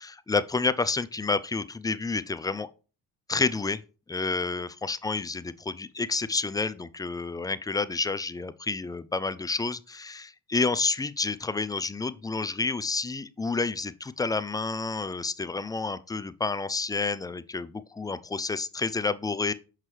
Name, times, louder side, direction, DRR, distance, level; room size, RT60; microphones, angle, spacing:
voice 1, 0.0-2.7 3.3-3.8 4.1-19.5, left 4 dB, 10° left, 0.3 m, -29 dB
6.0 x 5.4 x 3.2 m
supercardioid pair, 65°, 41 cm